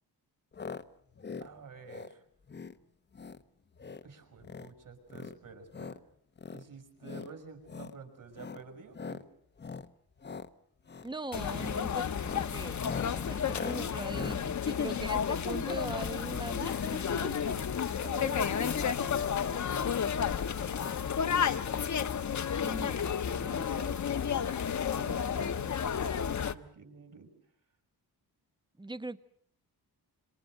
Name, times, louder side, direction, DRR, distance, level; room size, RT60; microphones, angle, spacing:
sound 1, 0.5-0.8 1.1-1.5 1.8-2.1 2.5-2.8 3.1-3.4 3.7-4.1 4.4-4.7 5.1-6.0 6.4-6.6 7.0-7.3 7.6-8.0 8.3-8.6 8.9-9.2 9.6-9.9 10.2-10.5 10.8-11.1 11.5-11.8 12.1-15.8 16.6-16.9 17.1-17.2 17.4-17.5, left 5 dB, 25° left, 1.0 m, -42 dB
voice 1, 1.4-2.2 4.0-6.0 6.5-9.3 14.9-15.0 18.0-21.2 25.0-27.3, right 5 dB, 50° right, 7 dB, 6.3 m, -50 dB
voice 2, 11.0-12.1 12.3-12.8 13.1-17.6 18.2-18.5 22.6-23.1 23.4-24.0 28.8-29.2, right 2 dB, 10° right, 12 dB, 1.1 m, -41 dB
sound 2, 11.3-26.5, left 7 dB, 45° left, 1.2 m, -32 dB
27.5 x 27.0 x 6.5 m, 0.64 s
wide cardioid pair, 165°, 40 cm